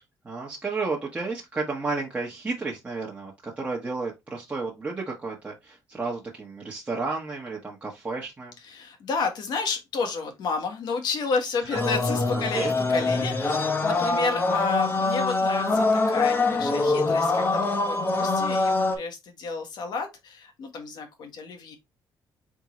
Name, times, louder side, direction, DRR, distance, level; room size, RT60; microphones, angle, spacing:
voice 1, 0.2-8.6 11.6-11.8 12.3-12.7, right 3 dB, 15° right, 1.1 m, -32 dB
voice 2, 8.6-21.8, left 4 dB, 65° left, 1.3 m, -31 dB
sound 1, 11.7-19.0, left 3 dB, 25° left, 0.9 m, -24 dB
3.7 x 3.7 x 3.0 m
cardioid pair, 105°, 8 cm